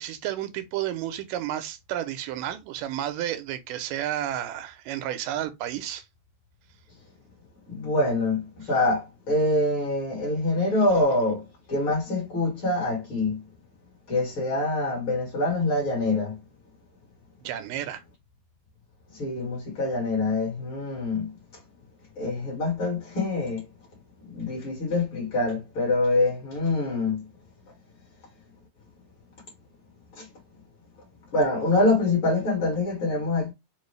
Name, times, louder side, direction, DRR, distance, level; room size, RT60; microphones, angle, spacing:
voice 1, 0.0-6.0 17.4-18.0, right 12 dB, 90° right, 2.3 m, -31 dB
voice 2, 7.7-13.4 14.1-16.4 19.1-21.3 22.2-23.6 24.2-27.3 30.1-30.3 31.3-33.5, left 2 dB, 50° left, 2.0 m, -25 dB
5.3 x 2.4 x 3.2 m
omnidirectional pair, 3.7 m